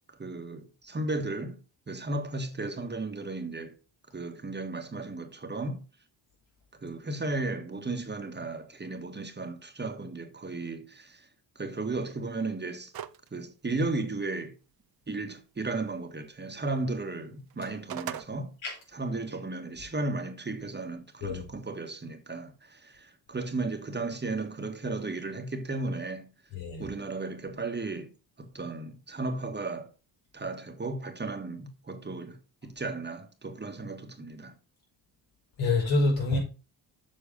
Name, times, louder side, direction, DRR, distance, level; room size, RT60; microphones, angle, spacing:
voice 1, 0.2-3.8 4.1-5.8 6.8-11.3 11.5-12.9 13.3-14.5 15.1-18.5 18.9-26.3 26.8-29.9 30.3-34.5, right 3 dB, 25° right, 1.4 m, -35 dB
sound 1, 12.9-13.3 13.7-13.8 17.5-18.3, right 11 dB, 50° right, 0.7 m, -37 dB
voice 2, 26.5-26.9 35.6-36.4, left 2 dB, 85° left, 5.0 m, -26 dB
7.4 x 6.2 x 5.1 m
cardioid pair, 100°, 45 cm